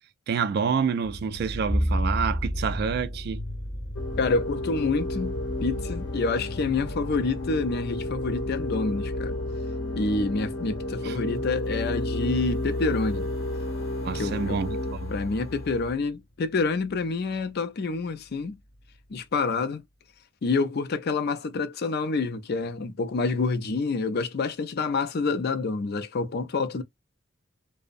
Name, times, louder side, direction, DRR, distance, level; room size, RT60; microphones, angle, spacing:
voice 1, 0.3-3.4 11.0-11.2 14.0-15.1, right 6 dB, 55° right, 0.3 m, -28 dB
sound 1, 1.0-16.1 16.4-17.5 17.9-18.0 18.3-19.0, equal, 40° left, 0.8 m, -39 dB
Bowed string instrument, 1.7-6.1, equal, 5° left, 0.5 m, -32 dB
sound 2, 3.9-15.9, left 1 dB, 75° left, 0.8 m, -32 dB
voice 2, 4.2-5.4 5.6-9.4 10.0-13.3 14.1-14.6 15.1-18.6 19.1-19.8 20.4-26.8, left 3 dB, 55° left, 0.4 m, -27 dB
2.6 x 2.0 x 2.4 m
head